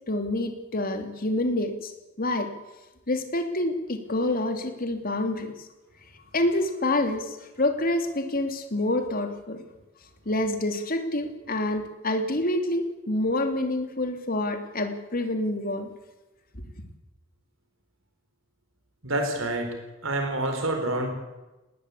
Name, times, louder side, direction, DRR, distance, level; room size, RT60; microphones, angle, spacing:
voice 1, 0.1-1.9 2.2-2.5 3.1-5.5 6.3-9.6 10.3-15.9, left 1 dB, 45° left, 6 dB, 2.9 m, -27 dB
voice 2, 19.0-19.8 20.0-21.1, right 1 dB, 85° right, 5 dB, 4.3 m, -27 dB
19.5 x 19.5 x 8.4 m, 1.1 s
head